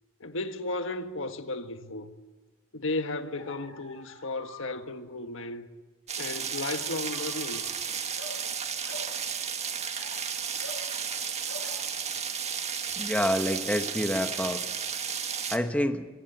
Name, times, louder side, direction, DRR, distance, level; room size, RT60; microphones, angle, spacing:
voice 1, 0.2-2.1 2.7-5.7 6.2-7.6 12.9-13.1, left 2 dB, 65° left, 1.6 m, -34 dB
sound 1, 3.2-4.8 6.4-7.8 8.1-8.4 8.8-9.1 9.7-11.2 11.4-11.8, left 2 dB, 90° left, 7.1 m, -46 dB
sound 2, 6.1-15.6, right 7 dB, 35° right, 1.7 m, -33 dB
voice 2, 13.0-14.6 15.5-16.1, left 1 dB, 5° left, 1.1 m, -27 dB
25.5 x 24.0 x 9.1 m
head